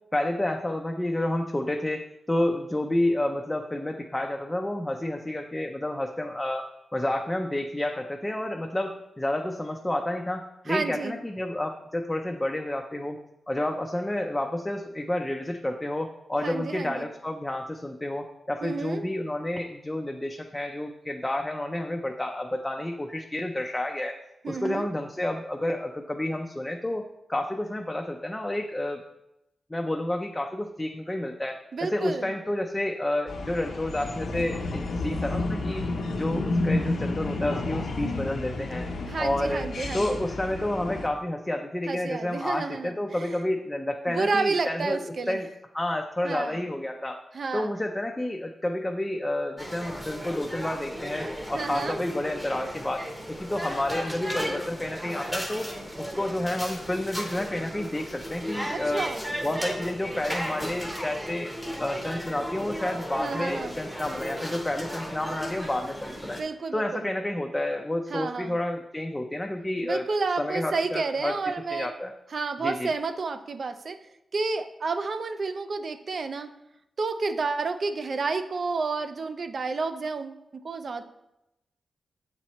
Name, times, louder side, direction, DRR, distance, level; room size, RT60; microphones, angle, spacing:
voice 1, 0.1-6.7 6.9-13.2 13.5-24.2 24.5-27.0 27.3-29.0 29.7-31.6 31.9-35.8 36.2-38.9 39.2-39.7 39.9-45.5 45.7-47.2 47.5-53.0 53.4-55.7 56.0-59.0 59.4-66.4 66.7-70.1 70.4-71.4 71.7-72.1 72.6-72.9, left 1 dB, 15° left, 2 dB, 0.4 m, -30 dB
voice 2, 10.7-11.1 16.4-17.1 18.6-19.1 24.4-24.9 31.7-32.3 39.1-40.2 41.9-43.4 44.1-45.4 46.2-46.6 47.3-47.7 51.5-52.0 58.7-59.2 63.2-63.8 66.4-67.1 68.1-68.6 69.8-71.9 72.3-74.0 74.3-76.5 77.0-81.0, right 4 dB, 55° right, 9 dB, 0.4 m, -30 dB
sound 1, 33.3-41.1, left 2 dB, 80° left, 0.8 m, -31 dB
sound 2, 49.6-66.4, equal, 5° right, 0.8 m, -35 dB
7.5 x 4.2 x 3.0 m, 0.88 s
wide cardioid pair, 105°, 0 cm